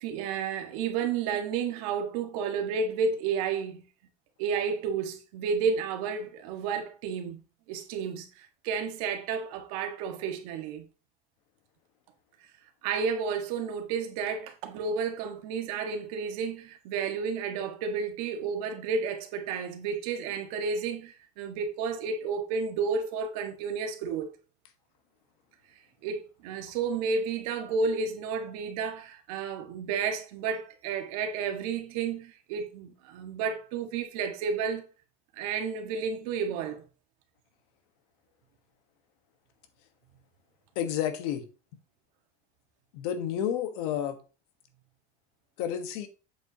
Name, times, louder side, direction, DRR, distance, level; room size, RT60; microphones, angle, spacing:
voice 1, 0.0-3.8 4.4-7.4 7.7-10.9 12.8-24.3 26.0-34.9 35.3-36.8, right 5 dB, 80° right, 1.6 m, -31 dB
voice 2, 40.7-41.5 42.9-44.2 45.6-46.1, left 10 dB, 90° left, 1.3 m, -30 dB
8.0 x 7.2 x 2.9 m
cardioid pair, 170°, 19 cm